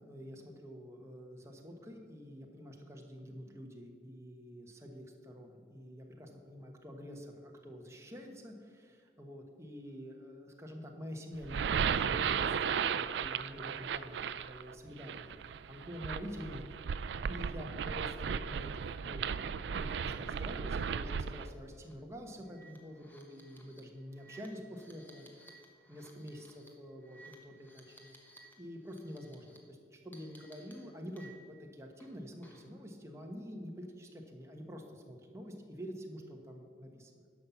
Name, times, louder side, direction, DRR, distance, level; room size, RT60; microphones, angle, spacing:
voice 1, 0.1-16.6 17.0-25.6 25.9-28.1 28.6-37.2, equal, 15° right, 2 dB, 1.1 m, -47 dB
sound 1, 11.3-21.5, right 7 dB, 80° right, 0.4 m, -35 dB
sound 2, 21.3-21.5 21.8-21.9 22.5-28.5 28.8-29.6 30.1-31.6 32.0-32.8, right 2 dB, 10° left, 1.1 m, -59 dB
11.0 x 5.8 x 7.0 m, 2.1 s
head